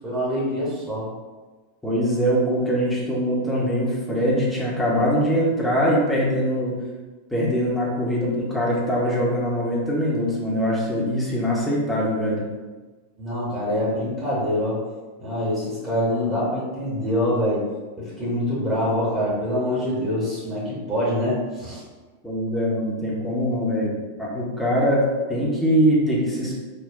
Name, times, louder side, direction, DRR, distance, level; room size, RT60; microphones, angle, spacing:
voice 1, 0.0-1.1 13.2-14.8 15.2-17.7 18.0-21.8, left 1 dB, 20° right, -7 dB, 1.0 m, -25 dB
voice 2, 1.8-6.7 7.3-12.4 22.2-23.9 24.2-26.5, equal, 5° left, -6 dB, 0.8 m, -22 dB
3.6 x 2.2 x 2.6 m, 1.3 s
figure-of-eight pair, 90°, 0 cm